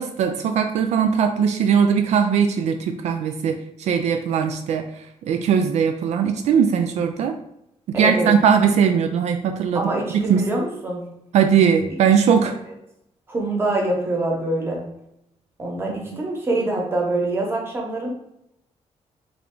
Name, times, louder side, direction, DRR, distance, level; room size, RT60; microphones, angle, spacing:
voice 1, 0.0-7.4 7.9-9.8 10.1-10.4 11.3-12.5 16.1-16.2, right 7 dB, 75° right, 6 dB, 0.4 m, -20 dB
voice 2, 7.9-8.3 9.7-11.0 13.3-14.8 15.6-18.1, right 2 dB, 20° right, -1 dB, 1.1 m, -24 dB
3.5 x 3.2 x 3.8 m, 0.82 s
cardioid pair, 150°, 12 cm